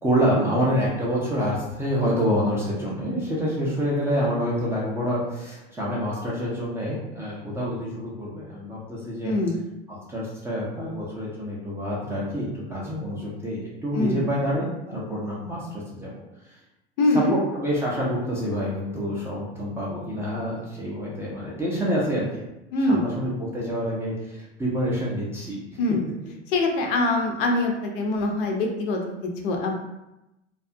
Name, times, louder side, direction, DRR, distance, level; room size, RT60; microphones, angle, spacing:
voice 1, 0.0-9.3 9.9-16.2 17.1-22.3 22.9-25.8, equal, 5° right, -7 dB, 0.4 m, -27 dB
voice 2, 9.2-9.6 13.9-14.2 17.0-17.4 22.7-23.1 25.8-26.0 26.5-29.7, left 2 dB, 45° left, 2 dB, 0.6 m, -23 dB
2.3 x 2.3 x 2.6 m, 0.94 s
figure-of-eight pair, 90°, 36 cm